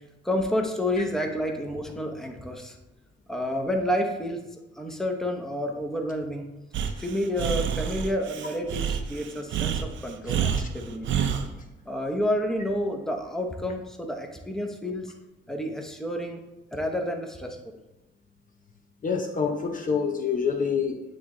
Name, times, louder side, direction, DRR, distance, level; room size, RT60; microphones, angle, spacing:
voice 1, 0.2-2.8 3.3-4.4 4.7-6.5 7.0-11.2 11.9-15.1 15.5-16.4 16.7-17.7, left 1 dB, ahead, 3 dB, 0.9 m, -29 dB
Breathing, 6.7-11.5, right 8 dB, 70° right, 0.6 m, -28 dB
voice 2, 19.0-21.0, left 6 dB, 40° left, 5 dB, 0.6 m, -27 dB
9.2 x 3.2 x 3.8 m, 0.97 s
cardioid pair, 90°, 20 cm